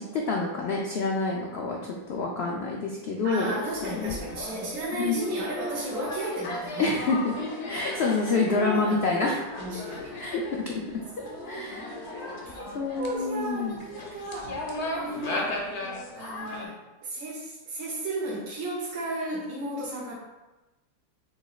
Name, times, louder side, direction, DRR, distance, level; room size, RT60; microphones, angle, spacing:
voice 1, 0.0-4.2 5.0-5.2 6.8-7.3 7.7-9.4 10.1-10.8 11.5-11.8 12.7-13.8, left 3 dB, 85° left, -1 dB, 0.5 m, -27 dB
voice 2, 3.2-7.0 8.3-9.0 9.6-10.2 11.2-11.6 11.9-12.7 13.0-14.6 14.8-15.5 16.2-16.7 17.0-20.1, right 1 dB, 60° right, -6 dB, 1.1 m, -34 dB
sound 1, 3.6-16.7, left 1 dB, 55° left, 0.9 m, -36 dB
5.0 x 4.0 x 2.3 m, 1.1 s
omnidirectional pair, 1.7 m